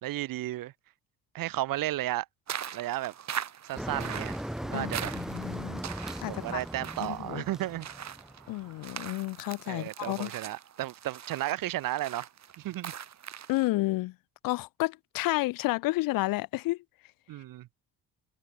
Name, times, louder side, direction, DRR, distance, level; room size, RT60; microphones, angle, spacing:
voice 1, 0.0-0.7 1.3-2.3 2.7-3.1 3.6-4.4 4.6-5.1 6.3-7.9 9.7-12.3 12.6-12.9 17.3-17.7, right 15 dB, 70° right, 4.4 m, -33 dB
sound 1, 2.5-13.7, right 9 dB, 50° right, 6.1 m, -42 dB
Motor vehicle (road), 3.8-8.7, equal, ahead, 1.4 m, -38 dB
voice 2, 4.7-5.8 6.2-6.6 7.0-7.4 8.5-10.3 13.5-14.1 14.4-16.8, left 20 dB, 75° left, 1.0 m, -31 dB
supercardioid pair, 80°, 35 cm